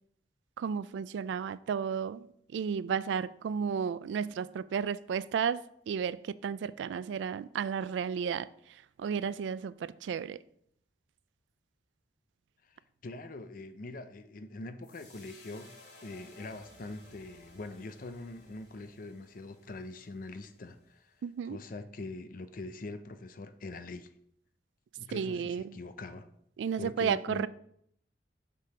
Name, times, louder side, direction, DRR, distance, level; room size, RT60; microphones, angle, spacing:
voice 1, 0.6-2.3 2.5-8.5 9.0-10.4 21.2-21.6 25.1-25.8 26.6-27.5, right 7 dB, 90° right, 0.3 m, -33 dB
voice 2, 12.7-15.7 16.0-21.0 21.4-24.1 25.0-26.3 26.8-27.5, left 2 dB, 50° left, 0.5 m, -43 dB
sound 1, 14.8-21.2, left 2 dB, 80° left, 1.9 m, -58 dB
6.7 x 3.8 x 4.8 m
head